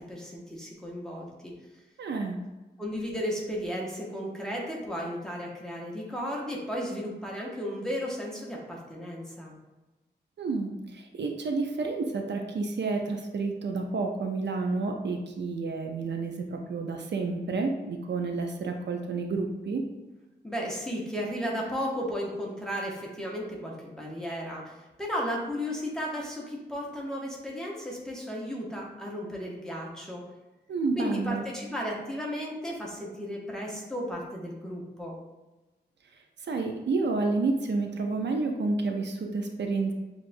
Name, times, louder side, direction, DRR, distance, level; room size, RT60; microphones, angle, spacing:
voice 1, 0.1-1.5 2.8-9.5 20.4-30.2 31.0-35.2, equal, 5° left, -3 dB, 0.8 m, -34 dB
voice 2, 2.0-2.4 10.4-19.8 30.7-31.5 36.4-39.9, right 3 dB, 75° right, 4 dB, 0.5 m, -30 dB
6.4 x 2.4 x 2.5 m, 1.1 s
wide cardioid pair, 135°, 18 cm